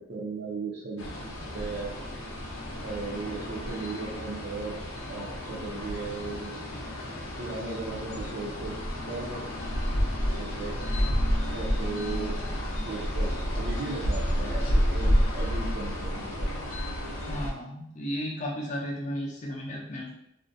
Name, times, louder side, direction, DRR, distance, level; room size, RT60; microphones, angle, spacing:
voice 1, 0.0-2.0 2.8-4.8 5.1-6.6 7.4-8.8 9.1-9.4 10.4-10.7 11.5-12.3 12.9-16.5, right 3 dB, 55° right, -5 dB, 0.4 m, -36 dB
sound 1, 1.0-17.5, equal, 75° left, 0.5 m, -30 dB
voice 2, 17.3-20.1, equal, 35° left, -3 dB, 0.5 m, -34 dB
2.5 x 2.1 x 2.5 m, 0.78 s
head